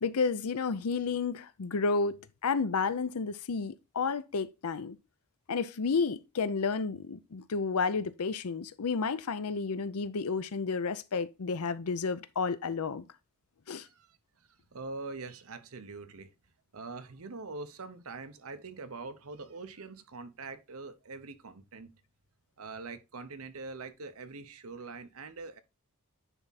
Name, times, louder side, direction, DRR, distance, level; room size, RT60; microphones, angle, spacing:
voice 1, 0.0-5.0 5.5-13.0 13.7-13.9, left 4 dB, 75° left, 0.6 m, -31 dB
voice 2, 13.8-14.2 14.7-16.3 16.7-21.9 22.6-25.6, right 3 dB, 70° right, 0.9 m, -43 dB
10.0 x 3.6 x 4.1 m
head